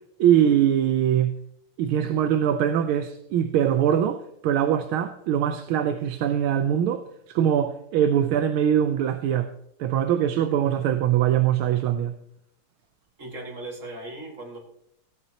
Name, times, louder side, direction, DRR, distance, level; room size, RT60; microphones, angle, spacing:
voice 1, 0.2-1.4 1.8-9.5 9.8-12.1, right 10 dB, 85° right, 1.5 m, -22 dB
voice 2, 13.2-14.6, right 2 dB, 40° right, 2.4 m, -37 dB
16.5 x 8.6 x 2.9 m
omnidirectional pair, 2.3 m